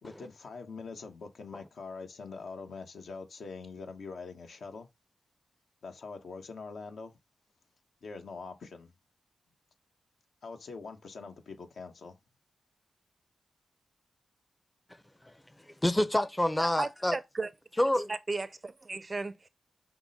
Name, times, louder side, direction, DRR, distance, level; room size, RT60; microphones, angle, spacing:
voice 1, 0.0-4.9 5.8-7.2 8.0-8.9 10.4-12.2, left 4 dB, 75° left, 1.0 m, -44 dB
voice 2, 15.2-17.2 17.8-18.1, left 1 dB, 15° left, 0.6 m, -28 dB
voice 3, 16.8-17.5 18.1-19.5, right 3 dB, 40° right, 0.4 m, -35 dB
5.9 x 2.2 x 4.0 m
cardioid pair, 60°, 0 cm